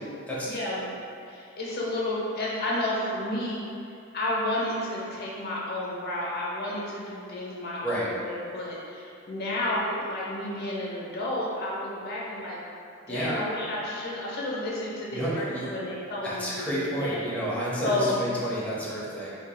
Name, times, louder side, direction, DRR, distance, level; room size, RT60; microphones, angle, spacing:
voice 1, 0.4-0.9 1.3-3.7 4.1-12.6 13.1-17.2 17.8-18.2, left 1 dB, 50° left, -5 dB, 0.8 m, -31 dB
voice 2, 13.1-13.4 15.1-15.7 16.2-19.3, equal, 5° left, -8 dB, 0.7 m, -30 dB
4.5 x 2.8 x 2.2 m, 2.5 s
head